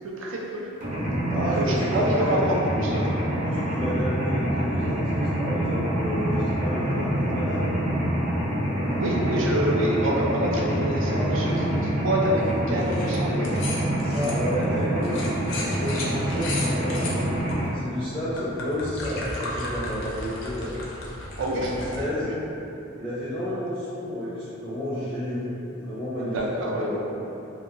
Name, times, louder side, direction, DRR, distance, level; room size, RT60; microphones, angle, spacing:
voice 1, 0.0-0.7 1.3-3.1 9.0-13.5 21.4-22.4 26.2-26.9, right 1 dB, 75° right, -3 dB, 0.4 m, -27 dB
Mechanisms, 0.8-17.7, right 1 dB, 40° right, 0.7 m, -26 dB
voice 2, 1.3-2.4 3.4-7.7 14.0-17.4 17.7-20.8 21.7-22.3 23.0-25.4 25.7-26.4 26.7-27.0, equal, 5° left, -12 dB, 0.5 m, -31 dB
sound 1, 12.8-13.2 13.4-17.5 18.1-22.0, left 2 dB, 75° left, 0.5 m, -35 dB
2.7 x 2.3 x 2.5 m, 2.9 s
head